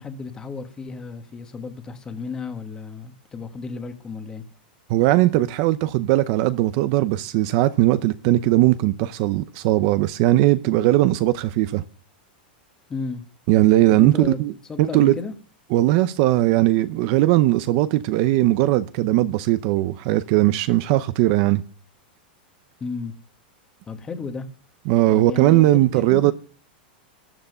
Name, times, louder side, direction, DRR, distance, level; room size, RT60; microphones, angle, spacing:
voice 1, 0.0-4.4 12.9-13.2 13.9-14.4 14.7-15.3 22.8-23.1 23.9-24.5 25.1-26.3, left 4 dB, 15° left, 1.4 m, -33 dB
voice 2, 4.9-11.8 13.5-14.5 14.8-15.1 15.7-21.6 24.9-26.3, right 16 dB, 45° right, 0.6 m, -19 dB
12.5 x 11.5 x 6.7 m
supercardioid pair, 160°, 5 cm